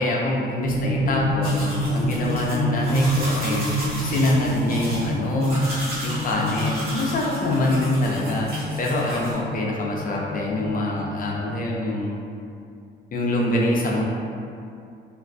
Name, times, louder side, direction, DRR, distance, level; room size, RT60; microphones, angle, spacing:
voice 1, 0.0-5.6 6.0-12.1 13.1-14.0, left 1 dB, 45° left, -3 dB, 0.5 m, -25 dB
sound 1, 0.6-11.8, equal, 85° right, 0.8 m, -28 dB
sound 2, 1.4-9.3, right 1 dB, 50° right, 1.0 m, -34 dB
2.4 x 2.1 x 2.5 m, 2.5 s
cardioid pair, 90°, 20 cm